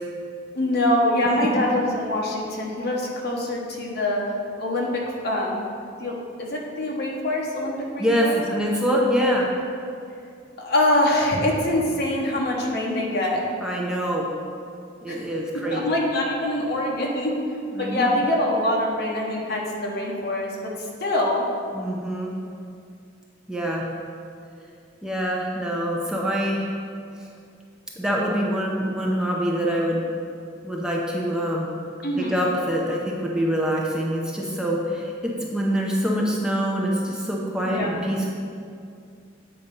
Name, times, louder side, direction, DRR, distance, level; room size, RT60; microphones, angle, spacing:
voice 1, 0.5-4.2 4.6-5.6 6.0-8.4 10.6-13.4 15.1-15.3 15.5-17.4 17.8-21.5 32.0-32.4 37.6-37.9, left 1 dB, 55° left, -1 dB, 1.1 m, -24 dB
voice 2, 8.0-9.5 13.6-14.3 15.0-15.9 17.7-18.2 21.7-22.3 23.5-23.8 25.0-26.7 28.0-30.0 30.6-31.7 32.2-38.3, equal, 5° right, -3 dB, 0.6 m, -25 dB
8.2 x 4.2 x 5.3 m, 2.4 s
head